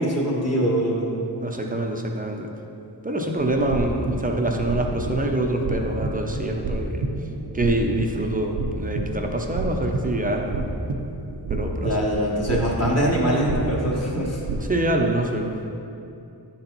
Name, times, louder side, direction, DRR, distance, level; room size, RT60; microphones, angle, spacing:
voice 1, 0.0-1.2 11.8-14.4, equal, 35° left, -4 dB, 1.4 m, -23 dB
voice 2, 1.4-2.5 3.0-7.0 7.5-10.6 11.5-11.9 14.6-15.5, right 1 dB, 20° right, 2 dB, 0.6 m, -25 dB
sound 1, 3.4-14.7, right 2 dB, 85° right, 0.9 m, -30 dB
10.0 x 4.4 x 4.0 m, 2.7 s
wide cardioid pair, 110°, 42 cm